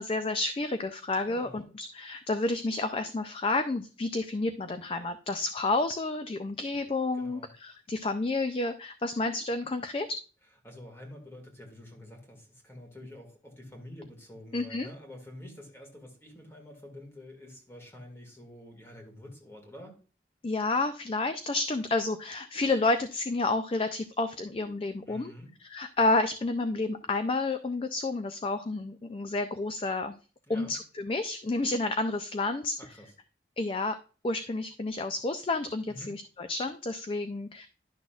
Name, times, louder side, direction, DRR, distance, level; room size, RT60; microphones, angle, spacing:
voice 1, 0.0-10.2 14.5-14.9 20.4-25.3 25.6-30.1 30.5-32.8 33.6-34.0 34.2-37.7, left 2 dB, 30° left, 9 dB, 0.4 m, -30 dB
voice 2, 1.3-1.7 7.2-7.5 10.6-20.0 25.1-25.5 30.5-30.8 32.8-33.1 35.9-36.2, left 1 dB, 15° left, 2 dB, 1.9 m, -47 dB
11.0 x 6.1 x 2.4 m, 0.36 s
head